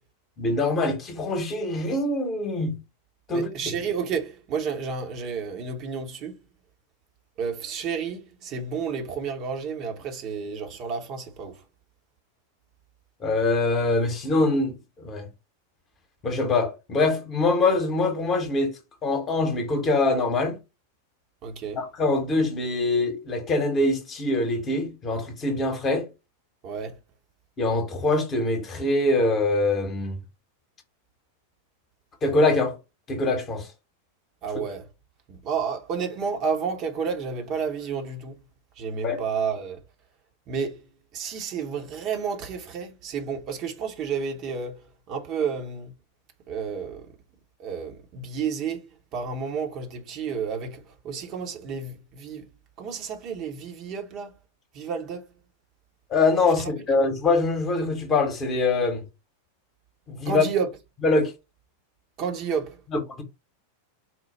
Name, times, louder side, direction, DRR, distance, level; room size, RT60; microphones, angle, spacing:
voice 1, 0.4-2.8 3.3-3.7 13.2-15.3 16.2-20.6 21.8-26.1 27.6-30.2 32.2-32.8 33.1-33.7 39.0-39.2 56.1-59.0 60.1-60.5 61.0-61.3 62.9-63.2, left 2 dB, 25° left, 1.2 m, -24 dB
voice 2, 3.3-6.4 7.4-11.6 21.4-21.8 26.6-26.9 34.4-34.8 35.3-38.3 38.8-39.8 40.5-40.8 41.1-44.8 45.1-45.9 46.5-47.1 47.6-52.5 52.8-54.3 54.7-55.3 60.2-60.7 62.2-62.8, right 6 dB, 35° right, 1.0 m, -31 dB
4.4 x 2.4 x 4.1 m
figure-of-eight pair, 90°, 0 cm